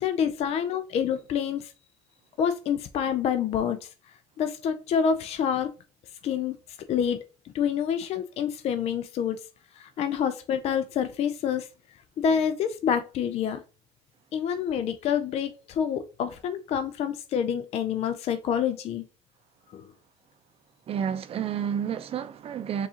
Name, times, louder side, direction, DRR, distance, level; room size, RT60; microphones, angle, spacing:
voice 1, 0.0-1.7 2.4-3.9 4.4-5.7 6.2-6.5 6.9-7.2 7.4-9.4 9.7-11.7 12.2-13.6 14.3-19.0 19.7-19.9, left 8 dB, 45° left, 0.4 m, -27 dB
voice 2, 20.9-22.9, right 8 dB, 45° right, 0.6 m, -30 dB
4.6 x 2.4 x 2.8 m
hypercardioid pair, 80°, 14 cm